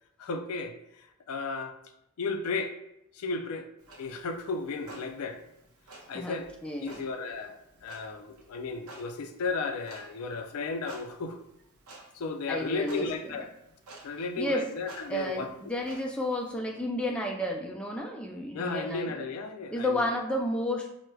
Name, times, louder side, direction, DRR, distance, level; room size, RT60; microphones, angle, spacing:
voice 1, 0.2-1.8 2.2-2.8 3.1-3.7 4.0-5.4 6.1-6.5 6.8-11.4 12.1-13.5 14.0-15.5 18.5-20.0, left 3 dB, 75° left, 6 dB, 0.4 m, -34 dB
Clock, 3.8-16.6, right 2 dB, 70° right, 0.6 m, -53 dB
voice 2, 6.6-7.0 12.5-13.3 14.4-14.7 15.1-19.2 19.7-20.9, left 1 dB, 5° left, -1 dB, 0.3 m, -31 dB
4.5 x 2.1 x 2.2 m, 0.83 s
head